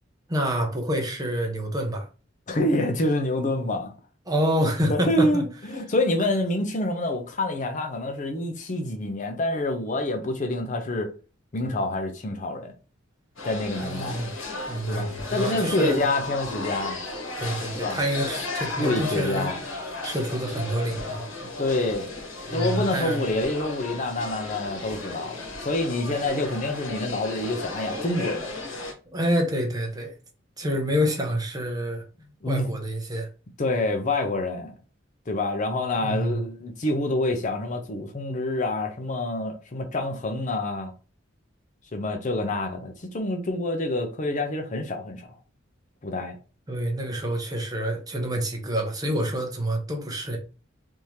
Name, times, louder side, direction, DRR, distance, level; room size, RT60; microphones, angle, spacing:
voice 1, 0.3-2.1 4.3-5.4 13.8-14.3 14.7-16.0 17.4-19.6 20.0-21.3 22.5-23.3 29.1-30.1 30.6-32.0 32.5-33.3 36.0-36.4 46.7-50.4, equal, 20° right, 0.7 m, -27 dB
voice 2, 2.5-3.9 4.9-11.1 11.5-12.7 13.4-14.2 14.9-17.0 17.8-18.0 18.8-19.6 21.6-22.1 22.5-28.5 32.4-32.8 33.6-34.7 35.3-40.9 41.9-45.3 46.0-46.4, left 2 dB, 40° left, 0.5 m, -27 dB
sound 1, 13.4-28.9, left 3 dB, 85° left, 1.3 m, -35 dB
3.5 x 2.8 x 3.1 m
head